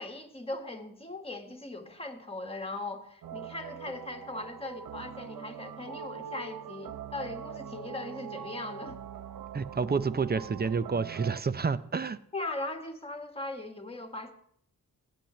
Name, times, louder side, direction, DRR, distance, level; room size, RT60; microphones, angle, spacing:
voice 1, 0.0-9.0 12.3-14.3, left 2 dB, 15° left, 4 dB, 1.6 m, -39 dB
sound 1, 3.2-11.4, right 9 dB, 60° right, 0.7 m, -42 dB
voice 2, 9.5-12.2, right 5 dB, 25° right, 15 dB, 0.5 m, -29 dB
17.5 x 8.6 x 3.1 m, 0.66 s
cardioid pair, 65°, 38 cm